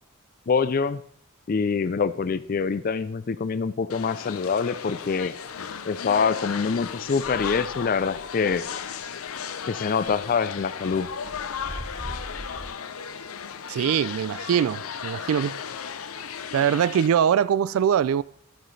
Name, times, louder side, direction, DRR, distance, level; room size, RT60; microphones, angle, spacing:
voice 1, 0.5-1.0 1.5-5.3 5.9-8.6 9.7-11.1, left 5 dB, 45° left, 0.4 m, -25 dB
sound 1, 3.9-17.1, left 7 dB, 90° left, 0.7 m, -35 dB
sound 2, 5.6-5.8 6.4-9.4 9.8-12.7, right 1 dB, 15° right, 0.6 m, -42 dB
voice 2, 13.7-15.6 16.5-18.2, right 8 dB, 75° right, 0.3 m, -22 dB
12.5 x 8.9 x 3.2 m
head